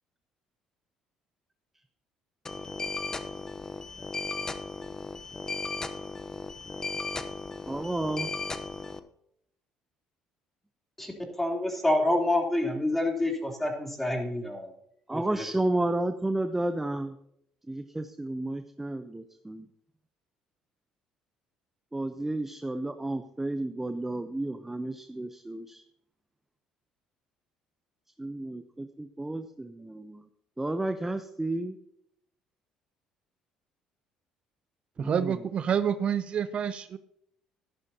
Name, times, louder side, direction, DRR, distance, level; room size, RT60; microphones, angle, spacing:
sound 1, 2.5-9.0, left 3 dB, 25° left, 0.9 m, -36 dB
voice 1, 7.7-8.3 15.1-17.2 17.7-19.7 21.9-25.8 28.2-30.2 30.6-31.8 35.0-35.4, right 2 dB, 10° right, 8 dB, 0.8 m, -32 dB
voice 2, 11.4-14.7 15.1-15.4, left 1 dB, 10° left, 0 dB, 3.4 m, -27 dB
voice 3, 35.0-37.0, right 8 dB, 50° right, 12 dB, 0.6 m, -28 dB
13.5 x 11.0 x 2.9 m, 0.73 s
supercardioid pair, 65°, 2 cm